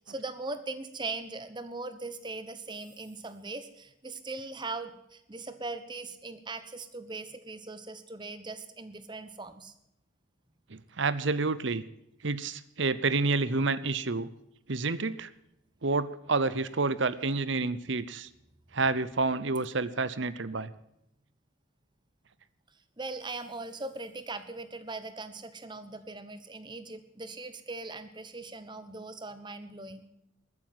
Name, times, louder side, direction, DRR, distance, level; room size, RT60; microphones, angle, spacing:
voice 1, 0.1-9.7 23.0-30.1, right 3 dB, 20° right, 11 dB, 1.1 m, -40 dB
voice 2, 10.7-11.8 12.2-14.3 14.7-15.3 15.8-18.3 18.7-20.7, right 3 dB, 60° right, 16 dB, 0.8 m, -29 dB
13.5 x 9.7 x 9.3 m, 0.81 s
head